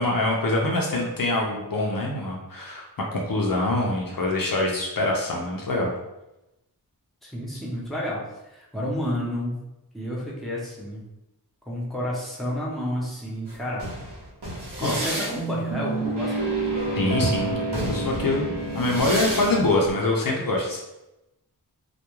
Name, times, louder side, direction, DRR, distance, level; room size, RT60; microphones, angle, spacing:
voice 1, 0.0-5.9 14.8-15.0 16.9-17.6 17.8-20.8, left 2 dB, 60° left, -1 dB, 0.5 m, -24 dB
voice 2, 7.2-8.2 8.5-9.6 9.9-11.0 11.7-13.9 14.8-16.5, equal, ahead, -5 dB, 0.7 m, -30 dB
sound 1, 13.5-19.9, right 2 dB, 80° right, 0.8 m, -29 dB
2.3 x 2.1 x 3.0 m, 0.94 s
wide cardioid pair, 45°, 40 cm